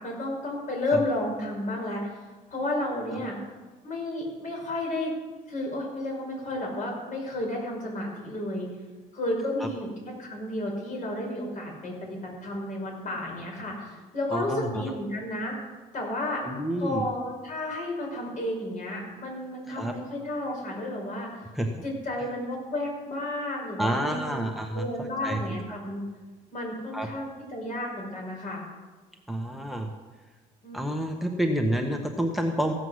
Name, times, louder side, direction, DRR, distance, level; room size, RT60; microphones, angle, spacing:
voice 1, 0.0-3.4 3.8-5.1 5.5-8.7 9.1-15.6 15.9-16.4 16.8-21.5 21.8-24.4 24.7-26.0 26.5-28.7 30.6-30.8, left 1 dB, 50° left, 0 dB, 5.2 m, -32 dB
voice 2, 14.3-14.8 16.4-17.0 19.8-19.9 21.5-21.7 23.8-25.8 26.9-27.1 29.3-29.9 30.7-32.7, right 1 dB, ahead, 3 dB, 1.0 m, -29 dB
15.5 x 7.8 x 6.3 m, 1.3 s
cardioid pair, 110°, 17 cm